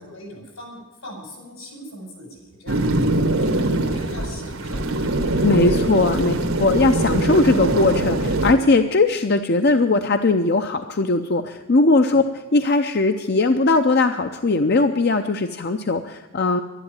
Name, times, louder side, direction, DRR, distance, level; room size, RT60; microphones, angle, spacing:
voice 1, 0.0-6.4 12.0-12.2, equal, 85° left, 0 dB, 6.6 m, -41 dB
sound 1, 2.7-8.5, right 2 dB, 85° right, 1.6 m, -22 dB
voice 2, 5.4-12.2 12.5-16.6, left 3 dB, 50° left, 7 dB, 0.6 m, -19 dB
12.0 x 11.0 x 9.0 m, 1.2 s
head